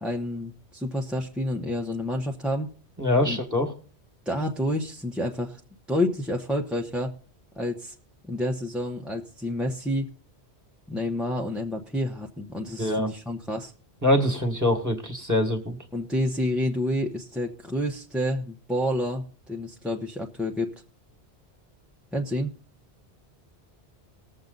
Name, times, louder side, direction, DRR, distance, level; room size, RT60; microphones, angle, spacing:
voice 1, 0.0-2.7 3.2-3.4 4.3-5.6 5.9-7.1 7.6-7.9 8.3-10.1 10.9-13.7 15.9-20.7 22.1-22.5, left 1 dB, ahead, 0 dB, 1.0 m, -29 dB
voice 2, 3.0-3.7 12.8-13.1 14.0-15.8, left 1 dB, 15° right, 4 dB, 1.8 m, -24 dB
20.5 x 7.4 x 3.9 m, 0.40 s
omnidirectional pair, 1.1 m